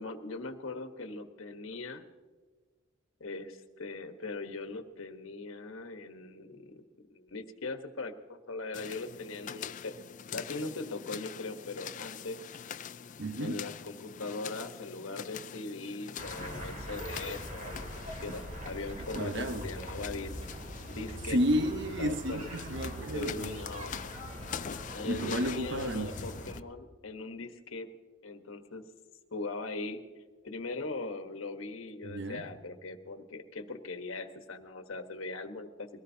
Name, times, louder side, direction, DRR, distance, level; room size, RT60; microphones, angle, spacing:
voice 1, 0.0-2.0 3.2-9.9 10.3-12.4 13.4-17.9 18.2-20.3 20.9-21.4 22.0-22.5 23.1-24.0 24.9-27.9 28.2-28.8 29.3-30.0 30.4-35.9, left 3 dB, 85° left, 1.3 m, -40 dB
sound 1, 8.7-26.6, left 8 dB, 40° left, 0.4 m, -44 dB
voice 2, 13.2-13.6 19.1-19.7 21.3-23.6 25.1-26.1 32.0-32.4, equal, 60° right, 1.0 m, -32 dB
sound 2, 16.2-26.6, right 1 dB, 40° right, 2.8 m, -42 dB
22.5 x 18.0 x 2.8 m
head